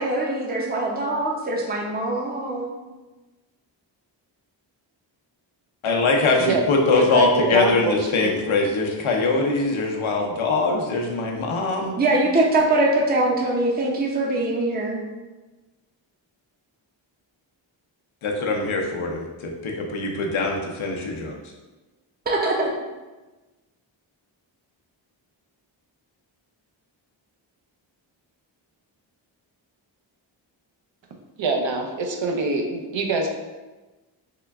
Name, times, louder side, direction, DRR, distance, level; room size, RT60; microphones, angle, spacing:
voice 1, 0.0-2.7 12.0-15.0 22.3-22.7, right 2 dB, 20° right, -1 dB, 0.6 m, -22 dB
voice 2, 5.8-12.0 18.2-21.3, left 3 dB, 80° left, 0 dB, 0.8 m, -22 dB
voice 3, 7.1-7.9 8.2-8.3 31.4-33.3, right 3 dB, 70° right, 3 dB, 0.7 m, -24 dB
3.7 x 2.2 x 3.4 m, 1.2 s
cardioid pair, 55°, 48 cm